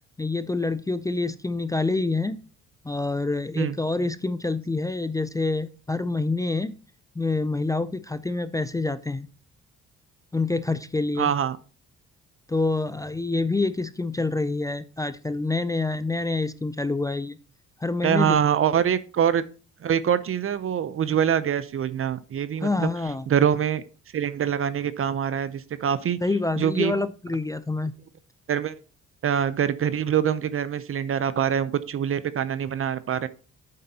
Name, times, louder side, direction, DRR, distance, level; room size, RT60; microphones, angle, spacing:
voice 1, 0.2-2.4 2.8-6.8 7.2-9.3 10.3-11.3 12.5-17.4 17.8-18.4 22.6-23.3 26.2-27.9, left 3 dB, 10° left, 13 dB, 0.4 m, -27 dB
voice 2, 11.2-11.6 18.0-19.4 19.8-22.9 23.3-23.8 24.1-26.2 26.6-26.9 28.5-28.8 29.2-33.3, right 8 dB, 45° right, 14 dB, 0.6 m, -24 dB
9.3 x 7.6 x 2.8 m, 0.36 s
cardioid pair, 90°, 30 cm